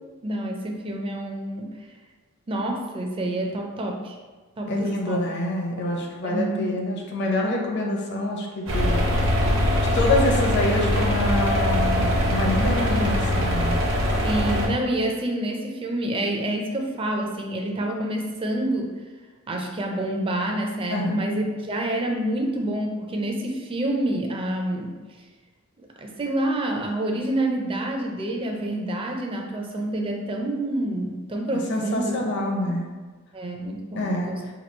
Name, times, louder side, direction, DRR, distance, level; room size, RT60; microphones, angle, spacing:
voice 1, 0.2-1.7 2.5-4.2 4.6-5.2 5.9-6.8 14.2-18.9 19.5-24.9 26.0-32.1 33.3-34.4, right 1 dB, 25° right, 1 dB, 0.4 m, -28 dB
voice 2, 4.7-9.0 9.9-13.8 20.9-21.2 31.7-32.9 33.9-34.3, left 1 dB, 55° left, 0 dB, 0.6 m, -26 dB
sound 1, 8.7-14.7, left 1 dB, 65° right, 0.7 m, -22 dB
3.0 x 2.3 x 4.3 m, 1.3 s
head